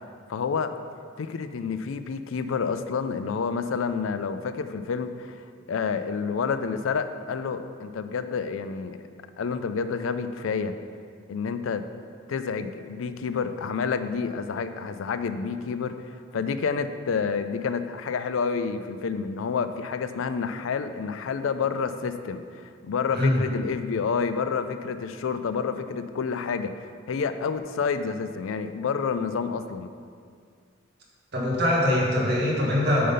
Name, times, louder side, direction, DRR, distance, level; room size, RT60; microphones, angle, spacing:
voice 1, 0.3-0.7 1.2-9.0 9.4-10.7 11.3-11.8 12.3-29.9, left 5 dB, 90° left, 10 dB, 0.4 m, -29 dB
voice 2, 31.3-33.1, left 1 dB, 55° right, -4 dB, 1.7 m, -23 dB
8.5 x 3.9 x 5.5 m, 2.2 s
head